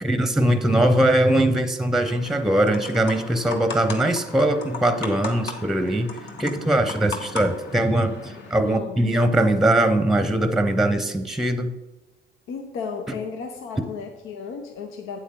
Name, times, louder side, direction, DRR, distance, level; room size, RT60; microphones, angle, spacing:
voice 1, 0.0-11.7, right 1 dB, ahead, 9 dB, 0.7 m, -21 dB
sound 1, 2.1-8.6, left 4 dB, 65° left, 1.5 m, -37 dB
voice 2, 8.6-9.0 12.5-15.2, left 5 dB, 90° left, 4 dB, 0.8 m, -34 dB
8.3 x 8.3 x 3.8 m, 1.1 s
cardioid pair, 90°, 20 cm